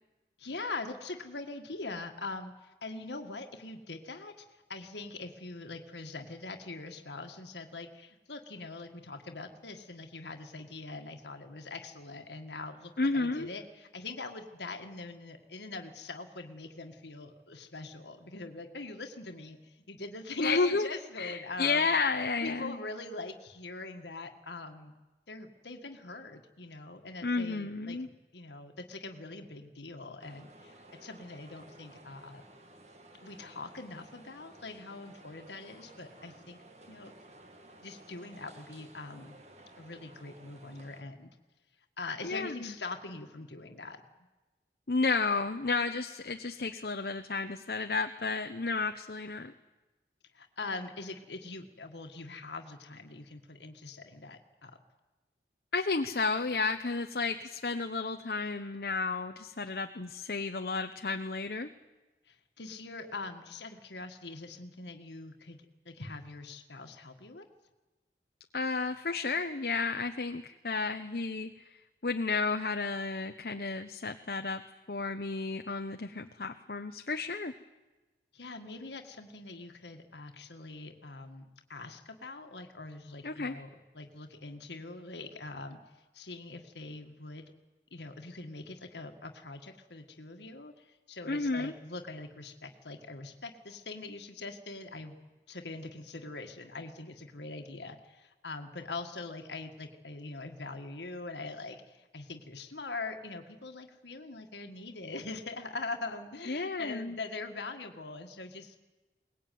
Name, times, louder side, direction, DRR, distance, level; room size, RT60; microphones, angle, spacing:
voice 1, 0.4-21.9 22.4-24.9 25.3-28.0 28.3-32.4 33.2-37.1 37.8-39.4 39.7-41.3 42.0-44.0 50.3-54.8 62.3-67.5 78.3-85.8 86.1-87.4 87.9-95.1 95.5-108.8, left 3 dB, 80° left, 5 dB, 1.7 m, -43 dB
voice 2, 13.0-13.5 20.4-20.9 21.2-22.7 27.2-28.1 42.2-42.7 44.9-49.5 55.7-61.7 68.5-71.5 72.0-74.6 74.9-77.5 83.2-83.6 91.3-91.7 106.5-107.2, left 4 dB, 60° left, 6 dB, 0.8 m, -32 dB
sound 1, 30.2-41.0, right 1 dB, 40° right, 2.0 m, -55 dB
22.5 x 19.5 x 9.3 m, 1.2 s
head